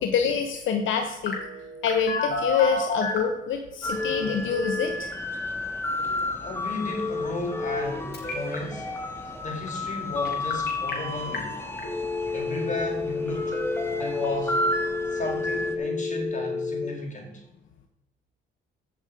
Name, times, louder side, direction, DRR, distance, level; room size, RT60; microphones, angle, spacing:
voice 1, 0.0-1.4 1.8-5.1, left 6 dB, 75° left, 5 dB, 1.1 m, -26 dB
Telephone, 1.3-3.3 3.9-4.9 6.9-7.9 8.1-8.6 10.2-10.9 11.3-11.4 11.8-16.8, left 4 dB, 60° left, 4.4 m, -30 dB
sound 1, 3.8-15.8, left 1 dB, 10° left, 1.9 m, -32 dB
voice 2, 6.4-8.9 9.4-11.6 12.3-13.6 13.9-14.6 15.1-17.4, left 2 dB, 40° left, 1 dB, 4.6 m, -34 dB
16.0 x 6.3 x 5.2 m, 0.94 s
cardioid pair, 90°, 20 cm